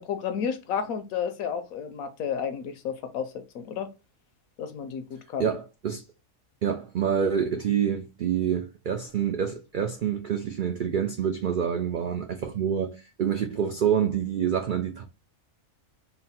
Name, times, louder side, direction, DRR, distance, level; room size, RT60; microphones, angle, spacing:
voice 1, 0.0-3.9 4.6-5.5, left 7 dB, 85° left, 1.2 m, -32 dB
voice 2, 5.4-6.0 6.6-15.0, right 8 dB, 90° right, 0.4 m, -27 dB
4.0 x 2.1 x 4.1 m
omnidirectional pair, 1.4 m